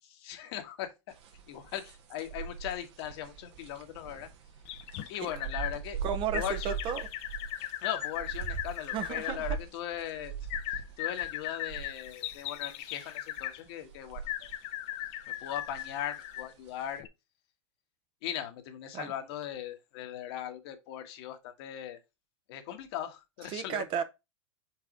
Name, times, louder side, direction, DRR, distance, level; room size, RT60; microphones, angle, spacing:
voice 1, 0.2-0.9 1.5-4.3 5.1-6.0 6.3-6.8 7.8-14.5 15.3-17.0 18.2-22.0 22.5-23.8, left 11 dB, 60° left, 1.4 m, -39 dB
sound 1, 1.1-14.6 14.8-17.0, right 7 dB, 70° right, 1.5 m, -42 dB
sound 2, 4.7-5.7 6.3-9.4 10.5-13.6 14.3-16.5 17.0-17.1, left 13 dB, 45° left, 0.6 m, -38 dB
voice 2, 6.0-7.0 8.9-9.6 18.9-19.1 23.5-24.0, right 8 dB, 35° right, 0.8 m, -33 dB
4.8 x 4.1 x 4.9 m
supercardioid pair, 135°, 15 cm